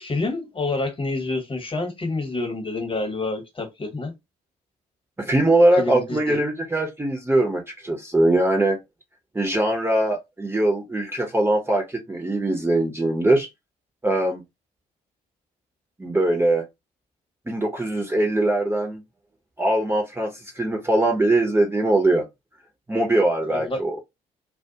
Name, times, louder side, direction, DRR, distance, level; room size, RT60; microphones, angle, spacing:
voice 1, 0.0-4.1 5.8-6.4 23.5-23.8, left 2 dB, 25° left, 1.2 m, -28 dB
voice 2, 5.2-8.8 9.3-13.5 14.0-14.4 16.0-16.7 17.5-19.0 19.6-22.3 22.9-24.0, right 1 dB, 10° right, 0.8 m, -21 dB
2.3 x 2.3 x 2.8 m
hypercardioid pair, 50°, 19 cm